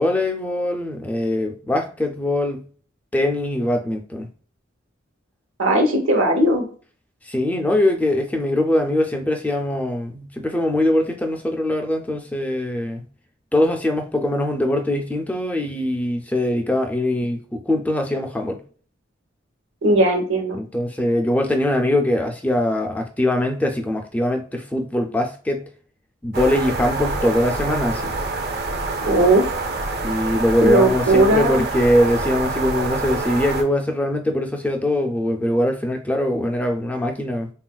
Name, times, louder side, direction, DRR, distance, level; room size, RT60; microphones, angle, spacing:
voice 1, 0.0-2.6 3.1-4.3 7.2-13.0 13.5-18.6 20.5-25.6 26.2-28.1 30.0-37.5, left 1 dB, 10° left, 0.3 m, -22 dB
voice 2, 5.6-6.7 19.8-20.6 29.1-29.5 30.6-31.6, right 1 dB, 90° right, 0.9 m, -17 dB
sound 1, 26.3-33.6, right 3 dB, 50° right, 0.5 m, -26 dB
3.6 x 2.3 x 2.2 m
head